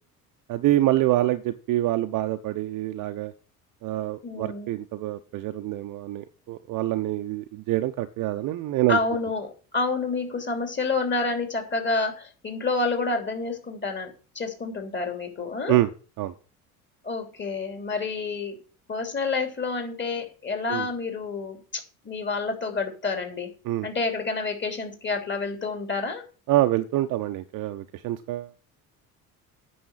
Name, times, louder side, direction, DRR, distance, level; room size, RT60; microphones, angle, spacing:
voice 1, 0.5-3.3 3.8-9.0 15.7-15.9 16.2-16.3 20.7-20.9 23.6-23.9 26.5-28.5, right 15 dB, 45° right, 7 dB, 0.9 m, -26 dB
voice 2, 4.2-4.7 8.9-15.8 17.0-18.6 18.9-23.5 23.8-26.2, left 3 dB, 25° left, 4 dB, 3.1 m, -29 dB
9.4 x 6.3 x 7.4 m, 0.36 s
figure-of-eight pair, 60°, 44 cm